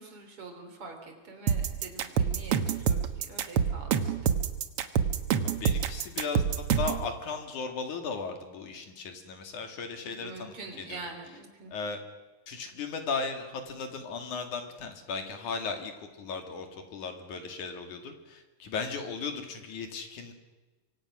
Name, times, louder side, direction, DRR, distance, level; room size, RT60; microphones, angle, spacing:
voice 1, 0.0-4.1 10.2-11.7, right 3 dB, 40° right, 4 dB, 4.0 m, -45 dB
sound 1, 1.5-7.0, right 7 dB, 65° right, 1.5 m, -26 dB
voice 2, 5.4-11.0 11.7-12.0 12.5-20.3, left 4 dB, 60° left, 5 dB, 3.6 m, -36 dB
25.0 x 25.0 x 6.2 m, 1.2 s
omnidirectional pair, 4.1 m